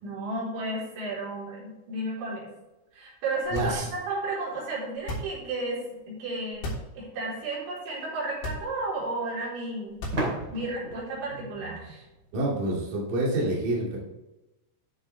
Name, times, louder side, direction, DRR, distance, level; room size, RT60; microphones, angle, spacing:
voice 1, 0.0-2.5 2.9-6.7 6.9-10.0 10.5-12.0, right 2 dB, 65° right, -6 dB, 6.4 m, -33 dB
sound 1, 3.4-4.1 5.0-5.5 6.5-7.0 7.4-7.5 8.3-9.0 9.9-10.6, left 1 dB, 85° left, 6.0 m, -35 dB
voice 2, 3.5-3.9 11.4-11.8 12.3-14.0, right 1 dB, 50° right, -5 dB, 3.6 m, -28 dB
sound 2, 7.1-7.2 10.1-12.8, right 2 dB, 30° right, 2.2 m, -35 dB
14.0 x 6.5 x 3.4 m, 1.0 s
omnidirectional pair, 5.7 m